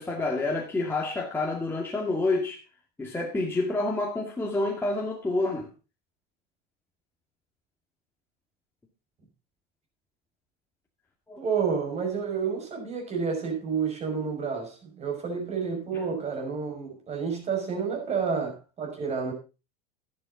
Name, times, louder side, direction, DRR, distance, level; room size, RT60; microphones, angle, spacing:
voice 1, 0.0-2.6 3.0-5.7 11.3-11.4 15.9-16.0, left 2 dB, 10° left, 2.1 m, -28 dB
voice 2, 11.4-19.3, right 6 dB, 35° right, 5.9 m, -30 dB
12.5 x 11.0 x 4.0 m
hypercardioid pair, 100°, 20 cm